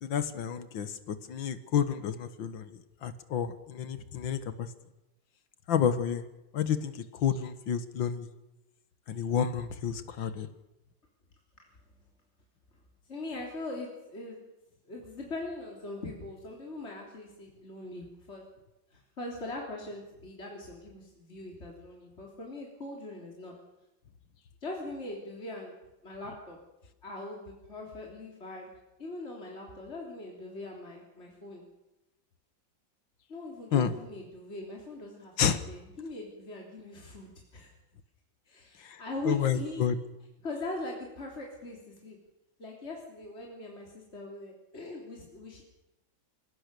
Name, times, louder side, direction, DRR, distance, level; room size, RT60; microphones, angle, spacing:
voice 1, 0.0-4.7 5.7-6.2 6.5-8.3 9.1-10.5 33.7-33.9 35.4-35.6 38.8-39.0 39.3-39.9, left 8 dB, 85° left, 12 dB, 2.1 m, -30 dB
voice 2, 13.1-14.4 14.9-18.4 18.9-23.5 24.6-25.8 26.0-26.6 27.0-28.7 29.0-31.6 33.3-35.3 35.7-37.7 38.5-39.9 40.4-42.2 42.6-45.6, left 2 dB, 35° left, -1 dB, 3.7 m, -41 dB
28.0 x 17.0 x 6.9 m, 0.96 s
omnidirectional pair, 2.0 m